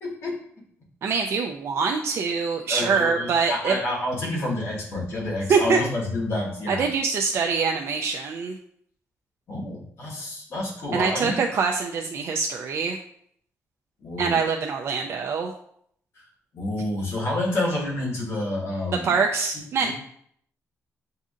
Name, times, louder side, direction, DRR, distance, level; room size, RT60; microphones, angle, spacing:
voice 1, 0.0-0.4 2.7-6.9 9.5-11.4 14.0-14.5 16.2-16.3 16.5-19.2 19.8-19.9, left 1 dB, 55° left, -3 dB, 1.5 m, -29 dB
voice 2, 1.0-3.8 5.5-5.8 6.7-8.6 10.9-13.0 14.2-15.5 18.9-19.9, right 5 dB, 55° right, 2 dB, 0.3 m, -24 dB
7.2 x 2.7 x 2.5 m, 0.66 s
wide cardioid pair, 175°, 5 cm